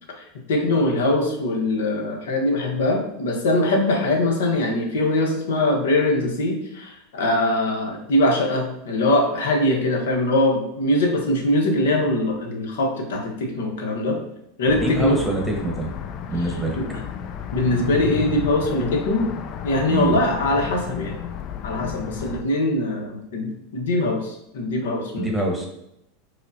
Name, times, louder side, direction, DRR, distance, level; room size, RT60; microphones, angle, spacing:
voice 1, 0.5-14.2 14.6-15.2 16.8-16.9 17.5-19.3 19.6-21.2 21.6-25.3, left 1 dB, 80° left, 2 dB, 0.9 m, -22 dB
sound 1, 14.7-22.4, left 9 dB, 45° left, 0.3 m, -32 dB
voice 2, 14.8-15.9 16.3-16.8 19.9-20.2 25.2-25.7, right 1 dB, ahead, -2 dB, 1.0 m, -24 dB
4.9 x 2.1 x 2.6 m, 0.79 s
hypercardioid pair, 115°, 0 cm